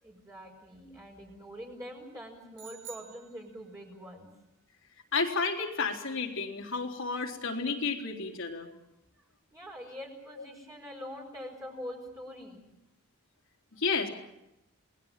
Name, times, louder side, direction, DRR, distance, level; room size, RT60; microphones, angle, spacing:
voice 1, 0.0-4.3 8.7-8.8 9.5-12.6, equal, 15° right, -2 dB, 5.4 m, -44 dB
sound 1, 2.6-4.0, right 9 dB, 60° right, 2.4 m, -49 dB
voice 2, 5.1-8.7 13.8-14.1, left 4 dB, 65° left, 3 dB, 3.8 m, -31 dB
29.0 x 20.0 x 7.5 m, 0.88 s
head